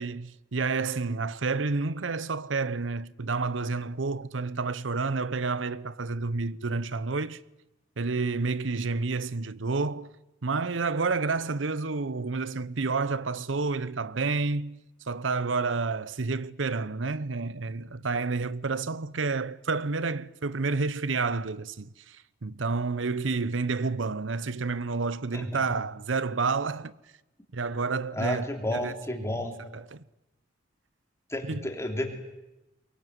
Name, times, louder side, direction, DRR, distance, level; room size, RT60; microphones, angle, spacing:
voice 1, 0.0-7.4 8.0-10.1 10.4-26.9 27.5-28.4 28.7-29.4 29.7-30.0 31.5-31.7, right 4 dB, 85° right, 0.8 m, -30 dB
voice 2, 25.3-25.7 28.1-29.6 31.3-32.1, left 1 dB, 15° left, 3.3 m, -31 dB
23.0 x 22.5 x 9.5 m
head